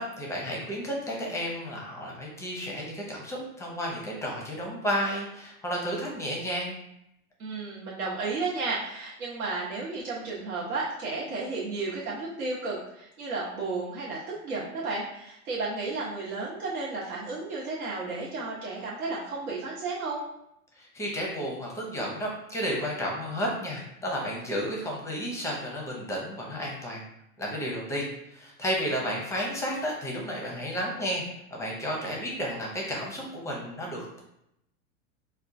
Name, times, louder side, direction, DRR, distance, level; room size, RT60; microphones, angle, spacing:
voice 1, 0.0-6.7 20.7-27.0 27.4-31.2 31.5-34.2, equal, 5° left, -2 dB, 0.5 m, -32 dB
voice 2, 7.4-20.2, right 3 dB, 85° right, -6 dB, 1.0 m, -33 dB
4.2 x 2.2 x 2.5 m, 0.80 s
hypercardioid pair, 125°, 43 cm